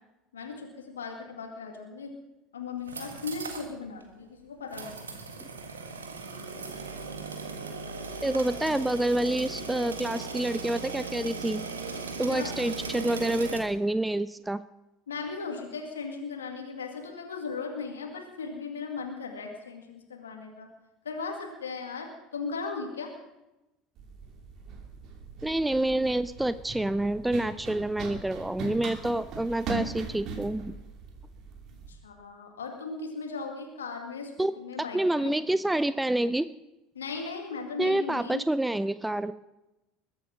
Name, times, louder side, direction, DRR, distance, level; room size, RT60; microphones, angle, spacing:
voice 1, 0.3-2.1 2.5-5.1 12.3-12.6 15.1-20.7 21.0-23.1 31.9-35.3 36.9-38.4, left 4 dB, 85° left, 3 dB, 2.1 m, -37 dB
sound 1, 2.7-3.7 4.0-4.1 4.7-13.6, right 4 dB, 90° right, 1.7 m, -38 dB
voice 2, 8.2-11.6 12.2-14.6 25.4-30.7 34.4-34.5 34.9-36.5 37.8-39.3, right 1 dB, 10° right, 15 dB, 0.5 m, -28 dB
Run, 24.0-31.9, right 4 dB, 50° right, 2.9 m, -40 dB
21.5 x 8.6 x 6.4 m, 0.97 s
hypercardioid pair, 70°, 0 cm